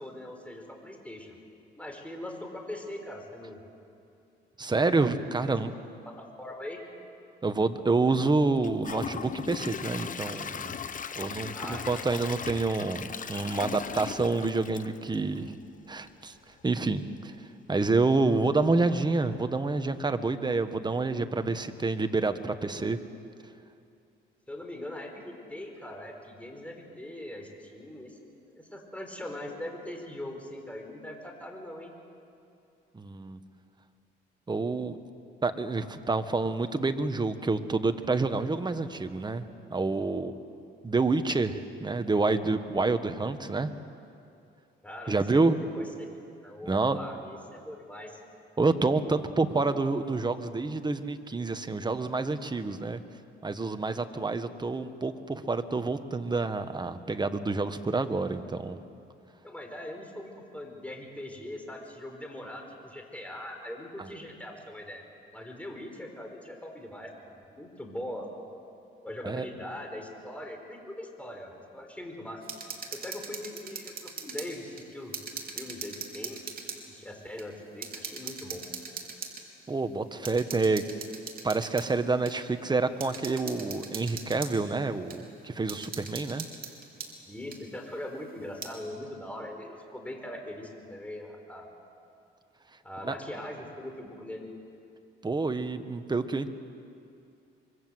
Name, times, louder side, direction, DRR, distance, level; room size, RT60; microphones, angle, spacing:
voice 1, 0.0-1.4 1.8-3.6 6.0-6.8 11.5-12.2 24.5-31.9 44.8-48.2 58.2-58.3 59.4-65.0 65.3-68.3 69.0-72.4 72.9-75.1 75.5-76.4 76.9-78.6 87.3-91.7 92.8-94.5, left 1 dB, 5° left, 2 dB, 5.1 m, -41 dB
voice 2, 4.6-5.7 7.4-10.7 11.1-15.5 15.9-16.3 16.6-17.3 17.7-23.0 32.9-33.4 34.5-35.0 35.4-40.3 40.8-43.7 45.1-45.5 46.6-47.0 48.6-53.0 53.4-58.8 69.2-69.5 79.7-80.8 81.4-86.4 93.0-93.1 95.2-96.6, right 3 dB, 20° right, 9 dB, 1.5 m, -28 dB
Gurgling / Toilet flush / Trickle dribble, 8.6-15.7 16.1-16.2 16.6-16.7, left 6 dB, 40° left, 1.1 m, -38 dB
sound 1, 72.4-74.5 74.8-76.8 77.4-77.5 77.8-79.4 80.2-81.9 82.2-82.3 83.0-84.5 85.1-85.2 85.7-87.1 87.5-87.6 88.4-88.7, right 5 dB, 45° right, 3.7 m, -40 dB
25.5 x 23.5 x 8.0 m, 2.5 s
cardioid pair, 90°, 20 cm